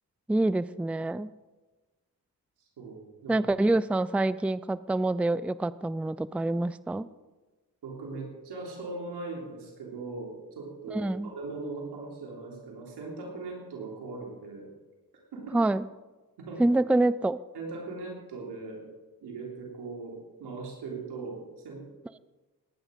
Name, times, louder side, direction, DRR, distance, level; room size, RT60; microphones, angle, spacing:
voice 1, 0.3-1.3 3.3-7.1 10.9-11.3 15.5-15.8 16.6-17.4, right 2 dB, 5° right, 17 dB, 0.4 m, -26 dB
voice 2, 2.8-3.4 7.8-14.7 15.1-15.7 16.4-16.8 17.5-18.8 19.2-21.8, right 3 dB, 90° right, -1 dB, 3.5 m, -40 dB
18.5 x 9.7 x 5.3 m, 1.2 s
supercardioid pair, 45°, 39 cm